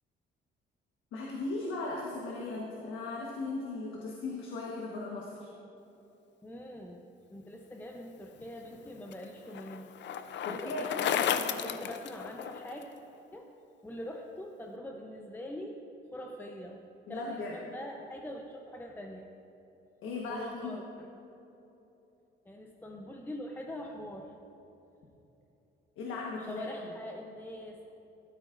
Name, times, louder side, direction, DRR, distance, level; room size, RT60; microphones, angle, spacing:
voice 1, 1.1-5.5 10.4-10.9 11.6-11.7 17.1-17.5 20.0-20.8 26.0-26.7, left 3 dB, 85° left, -2 dB, 1.3 m, -37 dB
voice 2, 6.4-9.9 10.4-12.9 13.3-13.5 13.8-15.8 16.1-16.8 17.1-19.3 20.3-21.1 22.5-24.3 26.4-27.9, left 1 dB, 10° left, 2 dB, 0.7 m, -43 dB
Bicycle, 8.4-12.8, left 8 dB, 65° left, 0.5 m, -34 dB
13.0 x 12.5 x 2.6 m, 3.0 s
cardioid pair, 90°, 20 cm